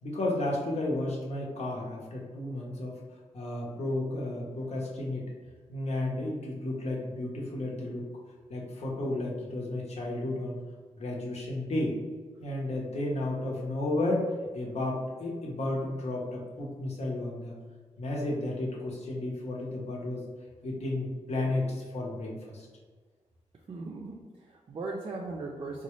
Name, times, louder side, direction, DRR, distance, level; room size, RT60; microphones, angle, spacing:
voice 1, 0.0-3.0 3.3-5.2 5.7-8.0 8.5-10.6 11.0-12.0 12.4-17.5 18.0-20.2 20.6-22.7, left 2 dB, 60° left, -3 dB, 0.9 m, -32 dB
voice 2, 23.7-25.8, right 3 dB, 45° right, -1 dB, 0.4 m, -38 dB
3.9 x 2.3 x 3.0 m, 1.4 s
wide cardioid pair, 115°, 12 cm